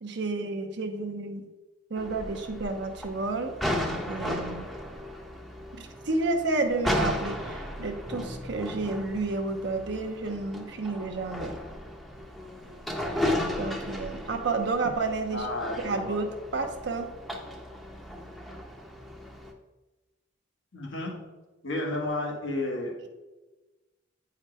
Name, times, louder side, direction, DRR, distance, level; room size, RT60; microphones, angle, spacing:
voice 1, 0.0-1.5 1.9-3.5 4.1-4.7 5.8-11.6 13.6-15.5 15.8-17.1, right 3 dB, 60° right, 4 dB, 0.6 m, -31 dB
sound 1, 2.0-19.5, left 1 dB, ahead, 0.6 m, -35 dB
voice 2, 15.3-16.2 20.7-21.2 21.6-23.1, left 1 dB, 85° left, -1 dB, 1.6 m, -32 dB
8.5 x 4.8 x 3.3 m, 1.1 s
head